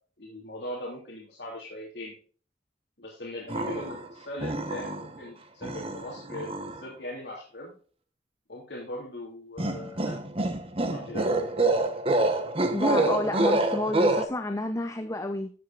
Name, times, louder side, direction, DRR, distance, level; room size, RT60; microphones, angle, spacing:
voice 1, 0.2-2.2 3.0-7.7 8.5-10.2 10.9-11.7, left 1 dB, 70° left, 3.0 m, -40 dB
sound 1, 3.5-4.1 4.4-5.2 5.6-6.8 9.6-14.2, right 2 dB, 35° right, 1.2 m, -27 dB
voice 2, 12.7-15.5, left 2 dB, 20° left, 0.7 m, -30 dB
14.0 x 8.2 x 2.5 m
head